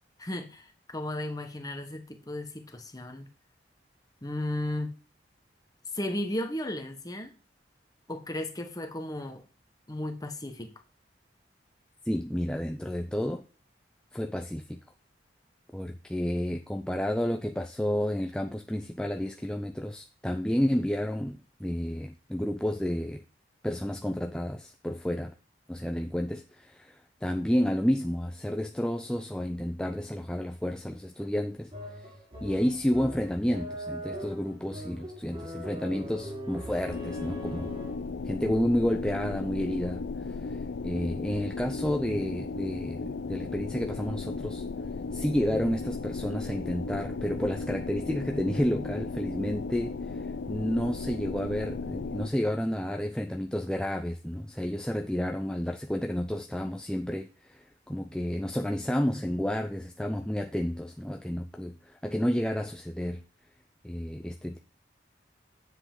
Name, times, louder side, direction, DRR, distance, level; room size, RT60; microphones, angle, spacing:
voice 1, 0.2-3.3 4.2-4.9 5.9-7.3 8.1-9.4 9.9-10.7, left 1 dB, 20° left, 1.3 m, -35 dB
voice 2, 12.1-13.5 14.1-14.8 15.7-23.2 23.6-25.3 25.7-31.7 32.0-32.1 32.4-37.7 38.2-44.6 45.1-63.2 63.8-64.6, equal, 5° left, 0.5 m, -31 dB
sound 1, 31.7-38.2, equal, 30° right, 2.8 m, -41 dB
sound 2, 36.9-52.3, left 4 dB, 80° left, 0.5 m, -36 dB
9.7 x 7.6 x 3.8 m
head